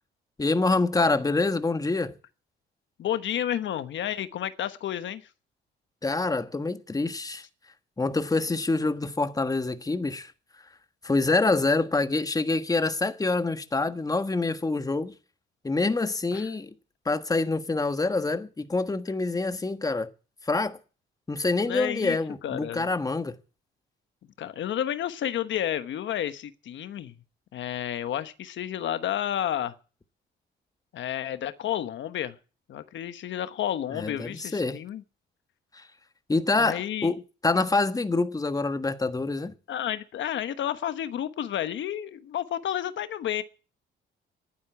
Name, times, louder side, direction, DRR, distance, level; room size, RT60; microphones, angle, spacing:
voice 1, 0.4-2.1 6.0-7.4 8.0-10.3 11.0-15.1 15.6-16.7 17.0-20.1 20.4-20.8 21.3-23.3 33.9-34.8 35.7-35.8 36.3-39.5, left 3 dB, 20° left, 1.4 m, -26 dB
voice 2, 3.0-5.2 16.3-16.5 21.6-22.2 22.4-22.9 24.4-27.1 27.5-29.7 30.9-32.4 32.7-35.0 36.6-37.1 39.7-43.4, left 11 dB, 70° left, 1.1 m, -31 dB
12.0 x 9.5 x 9.3 m
cardioid pair, 90°, 20 cm